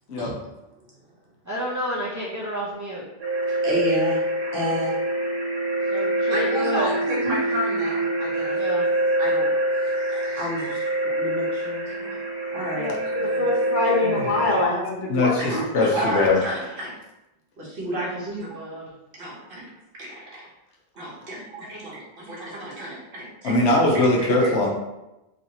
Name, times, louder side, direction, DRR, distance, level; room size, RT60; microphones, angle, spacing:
voice 1, 1.5-3.0 5.9-6.9 8.5-8.9 13.2-13.5 18.0-18.9, equal, 20° right, -7 dB, 0.5 m, -31 dB
sound 1, 3.2-14.6, right 1 dB, 40° right, 0.9 m, -25 dB
voice 2, 3.5-4.3 4.5-4.9 6.3-8.6 9.2-9.4 10.0-12.2 12.5-12.9 15.4-16.9 17.6-18.6 19.2-19.6 19.9-20.5 21.0-23.6 24.2-24.7, equal, 60° right, -5 dB, 1.1 m, -31 dB
voice 3, 13.4-15.6, left 2 dB, 55° left, -3 dB, 0.8 m, -24 dB
voice 4, 15.1-16.4 23.4-24.7, left 2 dB, 85° left, -1 dB, 1.0 m, -21 dB
3.1 x 2.7 x 2.8 m, 0.96 s
omnidirectional pair, 1.1 m